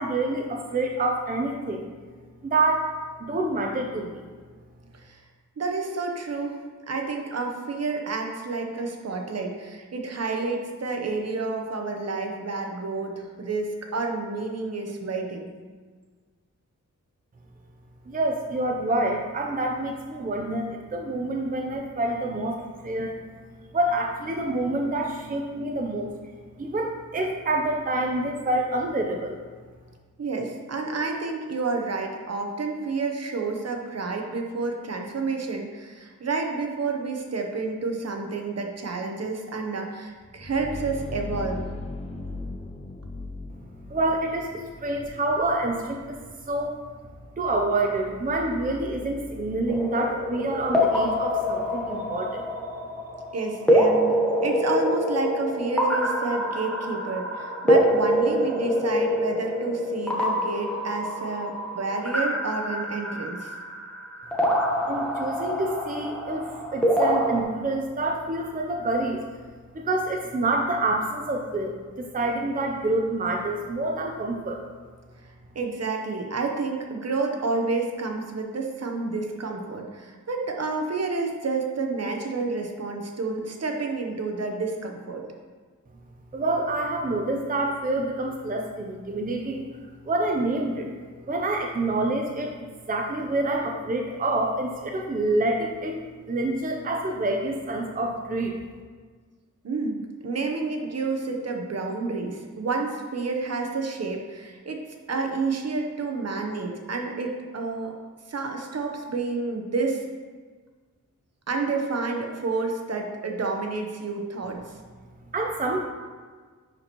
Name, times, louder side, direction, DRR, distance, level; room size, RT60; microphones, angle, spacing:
voice 1, 0.0-1.9 2.4-2.9 3.3-4.3 18.1-22.6 22.8-23.2 23.7-26.1 26.6-29.4 43.9-46.2 46.4-46.8 47.4-52.5 64.9-69.2 69.7-74.6 86.3-90.9 91.3-96.0 96.3-98.6 115.3-115.8, right 2 dB, 25° right, 1 dB, 0.6 m, -27 dB
voice 2, 5.6-6.6 6.9-15.5 30.2-41.7 53.3-54.2 54.4-63.5 75.5-85.2 99.6-104.8 105.1-107.9 108.3-110.0 111.5-114.6, right 3 dB, 50° right, 2 dB, 0.9 m, -29 dB
sound 1, 40.2-51.8, left 2 dB, 20° left, 0.6 m, -40 dB
sound 2, 49.7-67.4, equal, 5° left, 1.1 m, -25 dB
10.5 x 4.3 x 3.0 m, 1.5 s
wide cardioid pair, 125°, 32 cm